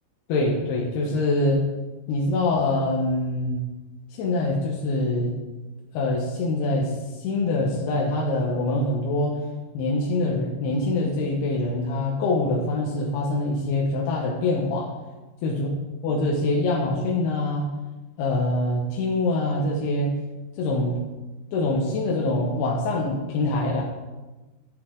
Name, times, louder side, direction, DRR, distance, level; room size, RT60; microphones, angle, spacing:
voice 1, 0.3-1.6 2.1-3.7 4.1-5.3 5.9-9.4 9.7-14.9 15.4-15.7 16.0-17.7 18.2-20.1 20.6-21.0 21.5-23.8, left 2 dB, 75° left, -3 dB, 3.1 m, -24 dB
10.0 x 8.9 x 3.8 m, 1.2 s
omnidirectional pair, 4.7 m